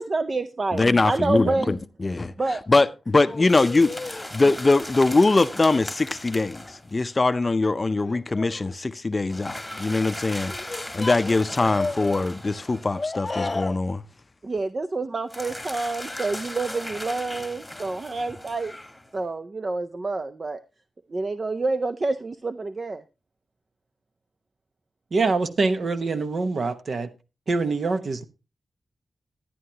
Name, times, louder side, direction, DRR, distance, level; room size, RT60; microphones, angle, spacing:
voice 1, 0.0-1.7 2.4-2.6 14.4-18.7 19.1-20.6 21.1-23.0, right 3 dB, 40° right, 0.4 m, -28 dB
voice 2, 0.7-2.3 2.7-14.0, left 3 dB, 30° left, 0.5 m, -22 dB
sound 1, 3.4-7.0 9.3-13.2 15.3-19.2, left 1 dB, 5° left, 1.4 m, -38 dB
voice 3, 25.1-27.1 27.5-28.2, right 3 dB, 60° right, 1.0 m, -24 dB
11.0 x 10.0 x 2.8 m
wide cardioid pair, 85°, 0 cm